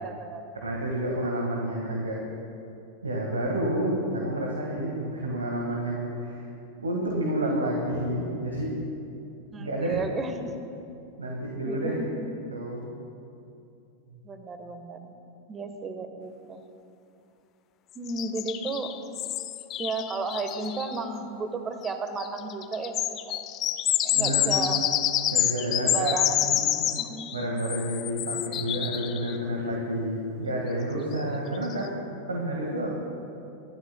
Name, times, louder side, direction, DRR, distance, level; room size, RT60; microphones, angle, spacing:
voice 1, 0.0-0.7 9.5-10.3 11.6-12.3 14.2-15.1 15.5-16.7 17.9-18.9 19.8-23.5 24.0-24.8 25.8-26.5 26.8-27.7, right 3 dB, 20° right, 7 dB, 1.2 m, -34 dB
voice 2, 0.5-2.2 3.0-6.5 6.8-8.8 9.6-10.0 11.2-12.0 12.5-12.8 14.1-14.2 24.1-24.7 25.3-26.8 27.3-31.9 32.3-33.0, right 1 dB, 75° right, -1 dB, 1.7 m, -29 dB
sound 1, 18.1-21.0 21.8-21.9 22.2-29.4 31.2-31.3 31.6-31.9, left 12 dB, 35° left, 0.6 m, -28 dB
25.5 x 12.5 x 2.2 m, 2.6 s
figure-of-eight pair, 90°, 0 cm